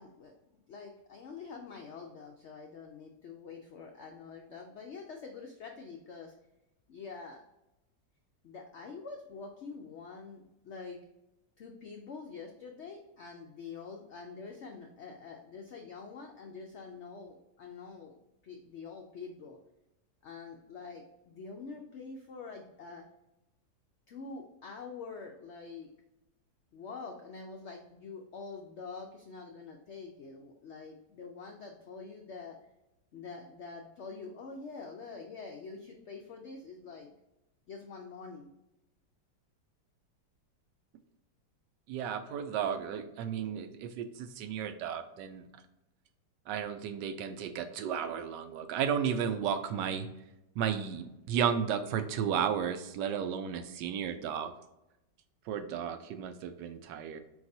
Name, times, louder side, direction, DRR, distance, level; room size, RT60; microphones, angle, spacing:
voice 1, 0.0-6.3 6.9-7.4 8.4-11.0 11.6-18.2 18.4-19.6 20.2-23.0 24.1-25.9 26.7-32.6 33.1-37.1 37.7-38.5, left 4 dB, 80° left, 2 dB, 0.6 m, -46 dB
voice 2, 41.9-45.4 46.5-50.1 50.6-54.5 55.5-57.2, right 8 dB, 90° right, 8 dB, 1.2 m, -33 dB
4.7 x 3.5 x 2.6 m, 0.91 s
omnidirectional pair, 1.8 m